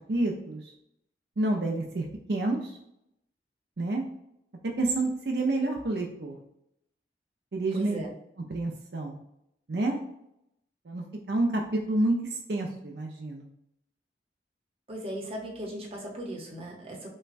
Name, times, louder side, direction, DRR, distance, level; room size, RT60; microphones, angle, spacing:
voice 1, 0.1-0.7 1.4-2.8 3.8-4.0 4.6-6.4 7.5-8.0 8.5-9.2 9.7-10.0 10.9-13.5, right 2 dB, 65° right, 1 dB, 0.6 m, -29 dB
voice 2, 7.7-8.1 14.9-17.1, right 1 dB, 35° right, -1 dB, 0.9 m, -37 dB
6.2 x 2.3 x 2.5 m, 0.78 s
head